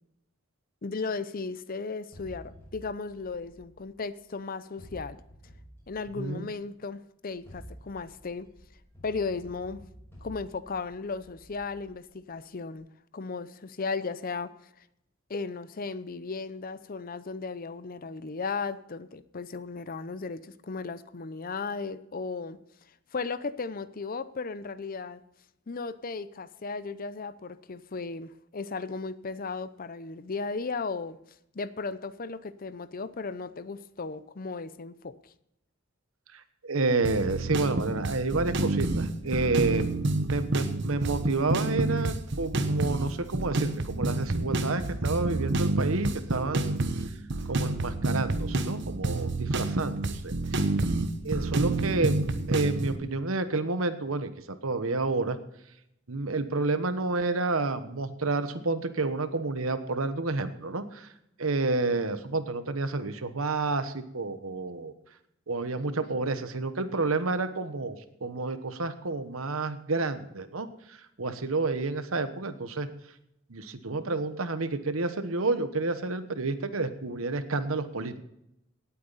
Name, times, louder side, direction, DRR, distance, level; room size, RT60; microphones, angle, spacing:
voice 1, 0.8-5.2 5.9-8.5 9.0-9.8 10.2-12.9 13.1-14.5 15.3-22.6 23.1-25.2 25.7-31.2 31.5-35.3, left 4 dB, 45° left, 15 dB, 0.6 m, -35 dB
sound 1, 2.1-4.3 4.8-6.6 7.3-12.4, equal, 10° left, 6.0 m, -51 dB
voice 2, 6.2-6.5 36.3-39.9 40.3-46.8 47.5-50.3 51.2-52.2 52.5-54.3 54.6-55.4 56.1-61.1 61.4-64.9 65.5-72.9 73.5-78.2, right 3 dB, 90° right, 10 dB, 1.1 m, -30 dB
sound 2, 37.0-53.0, right 2 dB, 60° right, 1.0 m, -29 dB
18.0 x 8.6 x 4.1 m, 0.80 s
head